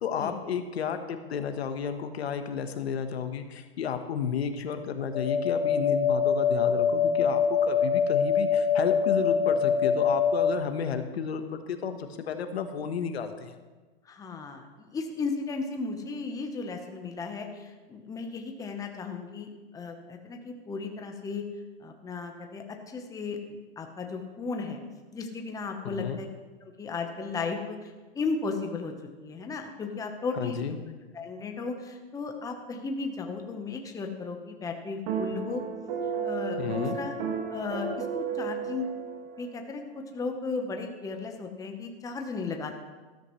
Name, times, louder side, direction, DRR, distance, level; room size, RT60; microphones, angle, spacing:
voice 1, 0.0-13.6 25.9-26.2 30.3-30.8 36.6-36.9, left 7 dB, 85° left, 8 dB, 1.2 m, -32 dB
sound 1, 5.1-10.5, left 6 dB, 55° left, 1.7 m, -24 dB
voice 2, 14.0-21.4 21.8-24.8 25.1-26.3 26.6-28.9 29.2-30.6 31.1-35.6 36.2-37.1 37.5-38.9 39.4-42.7, left 4 dB, 10° left, 4 dB, 1.0 m, -35 dB
sound 2, 35.1-39.5, right 6 dB, 50° right, 1.8 m, -33 dB
13.5 x 13.0 x 3.1 m, 1.3 s
hypercardioid pair, 135°, 31 cm